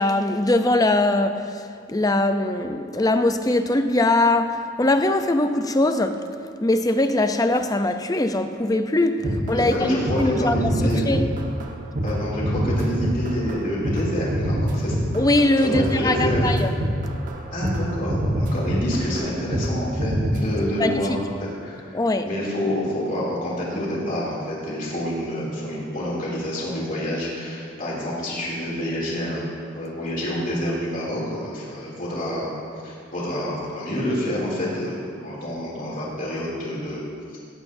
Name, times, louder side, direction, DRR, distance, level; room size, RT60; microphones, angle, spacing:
voice 1, 0.0-1.6 1.9-6.3 6.6-10.6 11.1-11.3 15.1-16.7 20.8-21.0 21.9-22.3, left 2 dB, 20° left, 8 dB, 0.6 m, -21 dB
voice 2, 9.2-11.0 12.0-15.0 15.6-16.4 17.5-22.0 22.3-29.5 29.7-32.6 32.8-37.0, equal, 45° left, -5 dB, 2.8 m, -28 dB
sound 1, 9.2-9.8 10.1-10.3 10.5-11.7 12.0-19.7 20.0-20.4, equal, 40° right, 1.4 m, -25 dB
16.5 x 15.5 x 2.7 m, 2.4 s
head